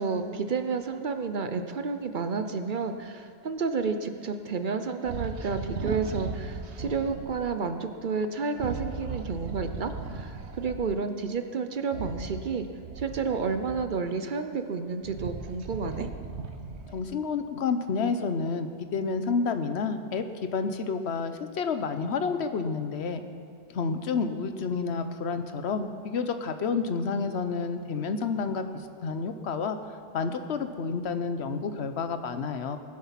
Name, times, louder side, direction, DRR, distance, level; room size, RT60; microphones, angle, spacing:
voice 1, 0.0-12.7 13.0-16.1, right 5 dB, 55° right, 8 dB, 0.8 m, -31 dB
sound 1, 5.0-7.4 8.5-10.9 11.8-14.2 14.7-17.1, right 4 dB, 85° right, 1.3 m, -37 dB
voice 2, 16.9-23.2 23.7-28.6 29.0-29.8 30.1-32.8, left 5 dB, 75° left, 9 dB, 1.1 m, -29 dB
19.5 x 7.6 x 5.8 m, 2.3 s
omnidirectional pair, 1.1 m